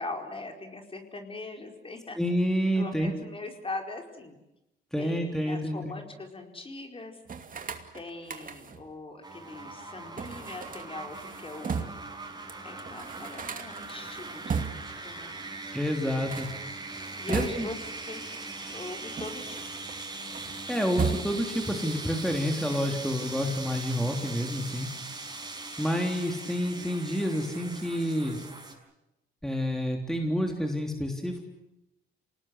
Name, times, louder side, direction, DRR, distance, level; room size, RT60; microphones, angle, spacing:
voice 1, 0.0-2.2 2.7-4.4 5.0-7.2 7.9-11.9 12.6-15.3 17.2-18.2 18.7-19.6, left 2 dB, 25° left, 4 dB, 4.7 m, -41 dB
voice 2, 2.2-3.1 4.9-6.0 15.7-16.5 17.3-17.7 20.7-24.9 25.8-28.4 29.4-31.4, equal, ahead, 2 dB, 3.4 m, -29 dB
sound 1, 7.3-8.9 10.2-12.1 12.5-12.6 12.8-15.0 16.1-17.9 18.7-20.0 20.3-21.6, right 6 dB, 45° right, 2.6 m, -36 dB
sound 2, 9.2-28.7, right 3 dB, 20° right, 5.7 m, -40 dB
27.5 x 19.0 x 8.1 m, 0.92 s
cardioid pair, 90°, 20 cm